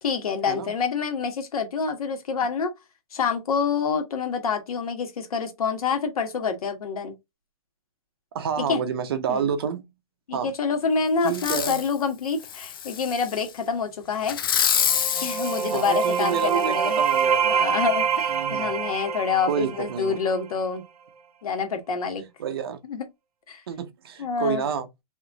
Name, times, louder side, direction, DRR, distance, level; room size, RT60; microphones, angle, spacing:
voice 1, 0.0-2.7 3.1-7.1 8.6-8.8 9.3-9.5 10.3-14.4 15.2-17.0 17.4-20.8 21.4-22.2 22.9-23.1 23.5-23.6 24.2-24.7, left 5 dB, 70° left, 1.4 m, -27 dB
voice 2, 8.3-9.8 10.3-10.5 11.2-11.8 15.7-17.6 18.3-18.7 19.5-20.2 22.4-22.8 23.7-24.9, right 7 dB, 40° right, 0.6 m, -29 dB
Fireworks, 11.3-11.9 12.4-13.5 14.2-16.6 17.2-17.3, left 9 dB, 35° left, 0.4 m, -27 dB
sound 1, 14.8-20.4, right 7 dB, 80° right, 0.7 m, -26 dB
3.2 x 3.2 x 3.5 m
hypercardioid pair, 180°, 19 cm